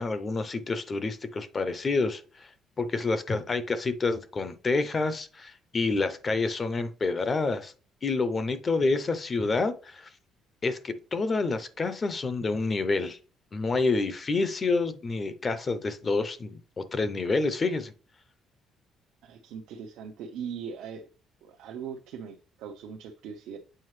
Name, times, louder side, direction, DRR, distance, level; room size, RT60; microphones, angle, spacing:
voice 1, 0.0-2.5 2.8-7.7 8.0-10.1 10.6-13.2 13.5-17.9, left 3 dB, 25° left, 0.5 m, -28 dB
voice 2, 19.2-21.1 21.4-23.6, right 7 dB, 85° right, 0.7 m, -40 dB
7.6 x 4.8 x 3.2 m
cardioid pair, 160°, 0 cm